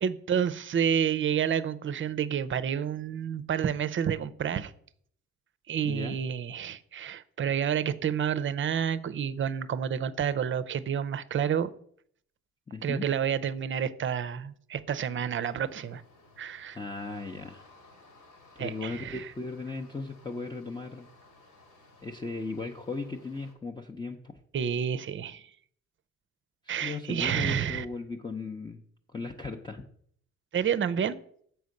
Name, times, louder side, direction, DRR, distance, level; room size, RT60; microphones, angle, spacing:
voice 1, 0.0-4.7 5.7-11.7 12.8-16.0 16.4-16.8 18.6-19.3 24.5-25.5 26.7-27.9 30.5-31.2, right 8 dB, 40° right, 14 dB, 0.6 m, -29 dB
voice 2, 5.8-6.2 12.7-13.1 16.7-17.7 18.5-21.1 22.0-24.4 26.6-28.8 29.1-29.8, left 3 dB, 15° left, 1 dB, 0.7 m, -37 dB
sound 1, 15.4-23.5, left 2 dB, 85° left, 2.3 m, -58 dB
7.0 x 4.6 x 6.4 m, 0.63 s
cardioid pair, 90°, 30 cm